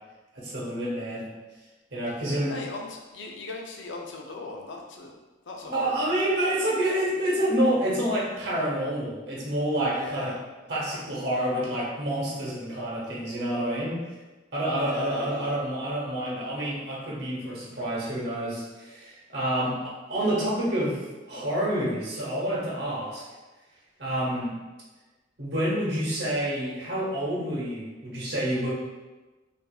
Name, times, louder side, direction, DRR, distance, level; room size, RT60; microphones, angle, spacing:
voice 1, 0.3-1.3 1.9-2.6 5.7-10.3 10.7-14.0 14.5-23.2 24.0-24.5 25.4-28.7, right 1 dB, 55° right, -5 dB, 1.0 m, -28 dB
voice 2, 2.3-5.1 5.4-6.7 9.9-10.4 14.7-15.6 20.1-20.5, left 3 dB, 70° left, 1 dB, 0.6 m, -39 dB
4.8 x 2.6 x 2.4 m, 1.2 s
head